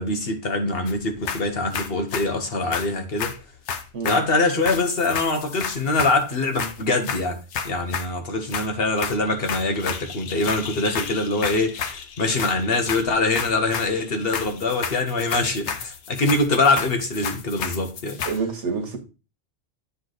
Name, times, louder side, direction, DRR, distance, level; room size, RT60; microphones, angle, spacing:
voice 1, 0.0-3.3 4.0-18.2, left 2 dB, 60° left, 1.3 m, -24 dB
sound 1, 0.9-1.0 1.2-2.3 2.7-4.3 4.6-6.2 6.5-8.1 8.5-8.7 9.0-18.4, left 6 dB, 80° left, 1.0 m, -32 dB
voice 2, 18.3-19.0, right 5 dB, 85° right, 1.6 m, -27 dB
9.6 x 3.2 x 3.9 m
omnidirectional pair, 1.2 m